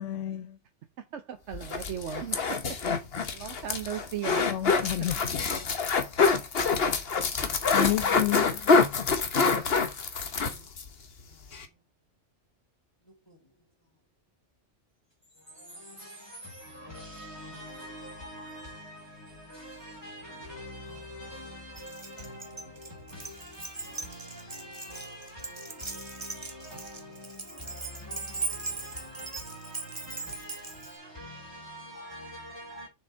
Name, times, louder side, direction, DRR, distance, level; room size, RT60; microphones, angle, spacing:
voice 1, 0.0-0.4 4.5-5.6 7.7-8.8, left 13 dB, 80° left, 0.9 m, -30 dB
voice 2, 1.1-2.4 3.3-4.7 7.1-7.2 10.4-10.6, right 9 dB, 75° right, 1.0 m, -37 dB
sound 1, 1.5-10.9 11.2-11.3 11.5-11.7, left 4 dB, 55° left, 1.3 m, -26 dB
voice 3, 11.3-11.8 13.0-14.0 15.3-32.9, equal, 20° left, 3.9 m, -45 dB
Keys jangling, 21.8-31.0, right 4 dB, 25° right, 1.2 m, -39 dB
7.0 x 5.2 x 4.4 m
omnidirectional pair, 1.2 m